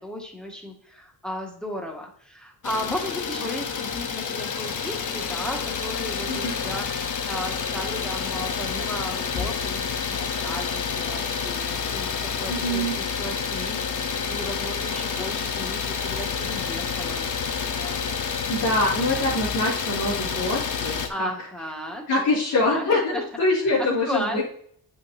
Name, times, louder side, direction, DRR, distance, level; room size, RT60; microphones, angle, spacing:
voice 1, 0.0-6.9 7.3-17.3 21.1-22.0 22.6-23.2 23.8-24.4, equal, ahead, 0 dB, 2.1 m, -35 dB
Idling, 2.6-21.1, left 6 dB, 50° left, 1.1 m, -29 dB
voice 2, 12.5-13.0 18.5-21.3 22.1-24.4, left 2 dB, 70° left, -9 dB, 3.3 m, -24 dB
8.5 x 5.9 x 2.8 m, 0.63 s
cardioid pair, 90°, 38 cm